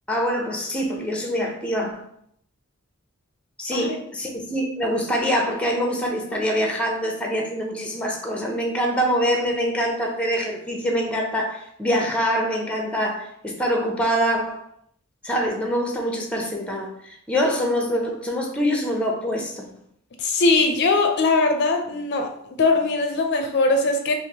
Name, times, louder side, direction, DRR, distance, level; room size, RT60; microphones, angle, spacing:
voice 1, 0.1-2.0 3.6-14.6 15.2-19.6, equal, 5° left, 1 dB, 0.6 m, -24 dB
voice 2, 20.2-24.1, left 3 dB, 55° left, 5 dB, 0.4 m, -21 dB
5.4 x 2.0 x 2.8 m, 0.70 s
head